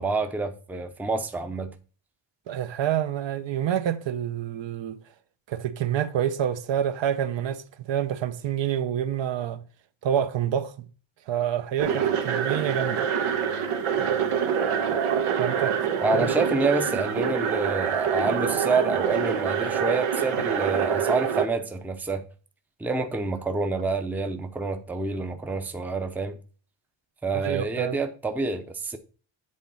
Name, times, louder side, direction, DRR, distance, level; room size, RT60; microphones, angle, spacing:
voice 1, 0.0-1.7 16.0-22.2 22.8-26.4 27.2-29.0, right 3 dB, 5° right, 0.5 m, -27 dB
voice 2, 2.5-5.0 5.5-9.6 10.0-10.9 11.3-13.1 15.4-15.8 16.1-16.3 27.3-28.0, right 10 dB, 65° right, 0.7 m, -27 dB
sound 1, 11.8-21.5, right 7 dB, 90° right, 1.4 m, -26 dB
8.5 x 4.1 x 5.6 m
wide cardioid pair, 180°, 49 cm